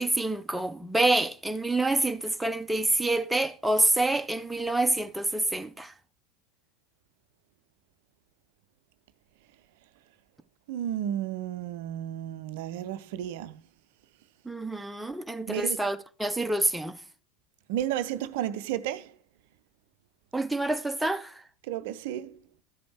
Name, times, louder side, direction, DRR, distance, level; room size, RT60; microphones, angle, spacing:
voice 1, 0.0-5.9 14.5-17.0 20.3-21.3, right 2 dB, 5° right, 0.6 m, -27 dB
voice 2, 10.7-13.6 15.5-15.8 17.7-19.1 21.7-22.4, right 11 dB, 60° right, 0.5 m, -32 dB
13.0 x 5.1 x 4.7 m
figure-of-eight pair, 80°, 0 cm